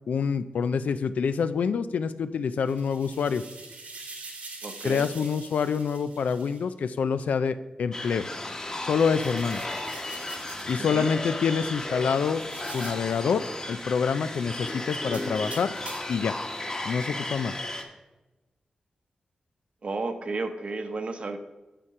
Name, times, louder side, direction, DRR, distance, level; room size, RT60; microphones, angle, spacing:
voice 1, 0.1-3.4 4.8-8.3 8.8-9.6 10.7-12.4 12.7-15.7 16.1-16.4 16.8-17.5, left 6 dB, 90° left, 12 dB, 0.4 m, -26 dB
sound 1, 2.5-6.6 9.0-10.8 12.3-13.1 15.0-16.2, right 3 dB, 85° right, 2.0 m, -44 dB
voice 2, 4.6-5.1 10.8-11.1 19.8-21.4, right 3 dB, 50° right, 8 dB, 0.9 m, -32 dB
sound 2, 7.9-17.8, left 1 dB, 30° left, 1.2 m, -34 dB
7.4 x 6.9 x 4.8 m, 1.1 s
cardioid pair, 80°, 2 cm